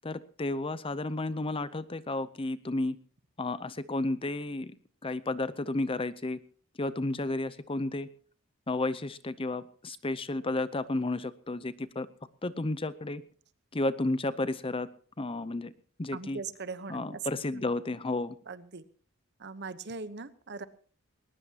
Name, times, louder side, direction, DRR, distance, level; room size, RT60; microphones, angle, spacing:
voice 1, 0.0-3.0 3.4-4.7 5.0-6.4 6.8-8.1 8.7-12.1 12.4-13.2 13.7-14.9 15.2-15.7 16.0-16.4 16.9-18.3, left 2 dB, 25° left, 15 dB, 0.7 m, -32 dB
voice 2, 16.1-17.6 18.5-18.8 19.4-20.6, right 4 dB, 55° right, 14 dB, 1.0 m, -40 dB
20.5 x 19.0 x 2.9 m, 0.43 s
head